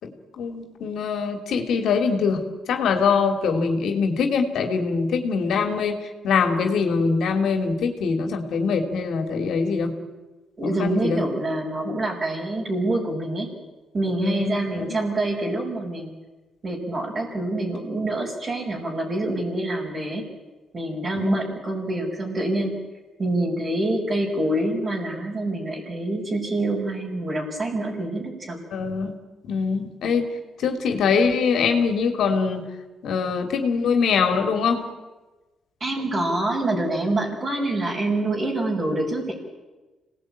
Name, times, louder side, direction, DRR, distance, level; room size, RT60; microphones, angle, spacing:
voice 1, 0.0-6.0 6.2-9.9 10.6-11.2 14.2-15.0 21.2-21.4 28.7-29.1 29.4-32.7 33.0-34.9, left 5 dB, 70° left, 5 dB, 3.0 m, -23 dB
voice 2, 10.6-13.5 13.9-16.1 16.6-20.2 20.7-22.7 23.2-28.6 35.8-39.3, right 1 dB, 35° right, -4 dB, 5.6 m, -26 dB
26.5 x 19.0 x 9.0 m, 1.2 s
cardioid pair, 90°, 0 cm